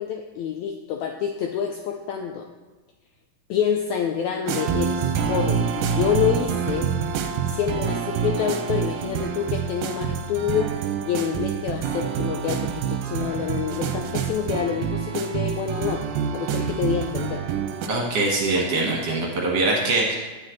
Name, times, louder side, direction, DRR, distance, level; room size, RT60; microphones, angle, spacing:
voice 1, 0.0-2.5 3.5-6.9 7.5-16.0 16.3-17.4, left 8 dB, 80° left, 3 dB, 1.6 m, -27 dB
sound 1, 4.5-17.9, right 7 dB, 80° right, 2.1 m, -27 dB
voice 2, 17.9-20.2, right 2 dB, 60° right, -2 dB, 2.2 m, -23 dB
9.9 x 8.8 x 3.1 m, 1.2 s
omnidirectional pair, 3.8 m